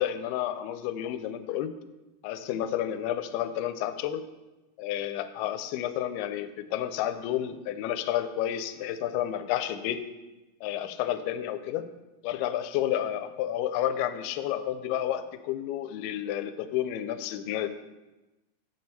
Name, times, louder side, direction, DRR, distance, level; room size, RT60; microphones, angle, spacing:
voice 1, 0.0-1.7 2.2-4.2 4.8-10.0 10.6-11.9 12.2-17.7, left 11 dB, 90° left, 11 dB, 2.5 m, -30 dB
8.2 x 6.7 x 4.1 m, 1.1 s
omnidirectional pair, 4.4 m